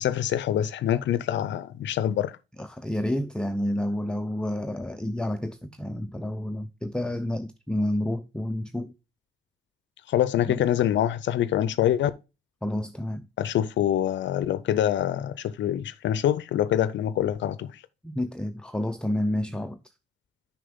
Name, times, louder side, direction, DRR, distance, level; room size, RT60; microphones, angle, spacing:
voice 1, 0.0-2.3 10.1-12.1 13.4-17.8, left 11 dB, 65° left, 0.5 m, -25 dB
voice 2, 2.6-8.9 10.6-10.7 12.6-13.3 18.0-19.8, left 1 dB, 5° left, 0.5 m, -29 dB
6.7 x 5.9 x 3.6 m
cardioid pair, 90°, 20 cm